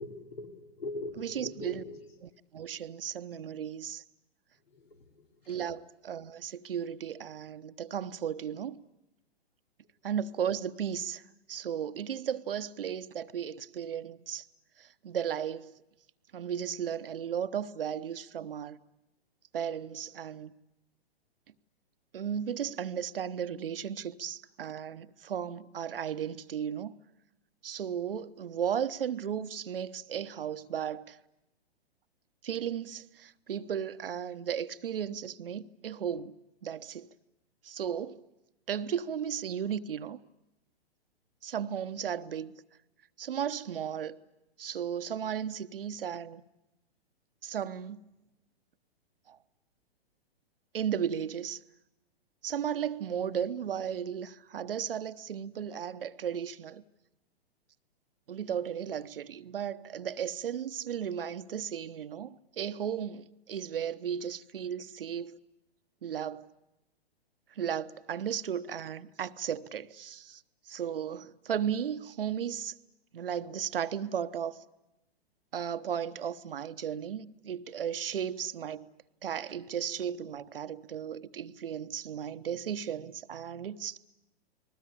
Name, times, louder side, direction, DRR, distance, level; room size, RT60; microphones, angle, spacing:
voice 1, 0.0-2.1 4.7-5.6, left 2 dB, 70° left, 4.9 m, -42 dB
voice 2, 1.2-1.8 2.5-4.0 5.5-8.8 10.0-11.2 11.5-14.4 14.8-15.7 16.3-18.8 19.5-20.5 22.1-26.9 27.6-31.2 32.4-36.3 36.6-37.1 37.6-38.2 38.7-40.2 41.4-42.5 43.2-44.2 44.6-46.4 47.4-48.0 49.3-49.4 50.7-51.6 52.4-56.8 58.3-65.4 66.0-66.5 67.6-70.4 70.7-72.7 73.1-74.6 75.5-78.9 79.2-84.0, right 8 dB, 60° right, 1.1 m, -35 dB
30.0 x 20.5 x 8.6 m
figure-of-eight pair, 115°, 31 cm